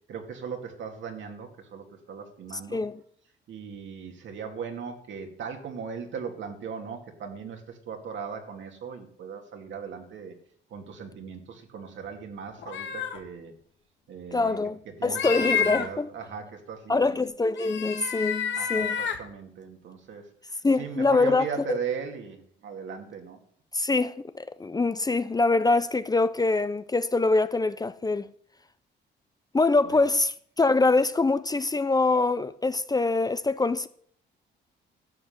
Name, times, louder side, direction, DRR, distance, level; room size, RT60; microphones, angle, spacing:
voice 1, 0.1-2.8 3.5-10.3 10.7-13.5 14.1-14.6 15.0-17.2 18.6-20.3 20.8-23.4 29.8-30.0, right 6 dB, 70° right, 2.4 m, -38 dB
sound 1, 12.6-13.2 15.0-15.9 17.6-19.2, left 7 dB, 70° left, 1.6 m, -29 dB
voice 2, 14.3-16.1 16.9-19.0 20.6-21.8 23.7-28.3 29.5-33.9, left 3 dB, 20° left, 0.5 m, -24 dB
12.0 x 7.5 x 7.3 m
cardioid pair, 90°, 20 cm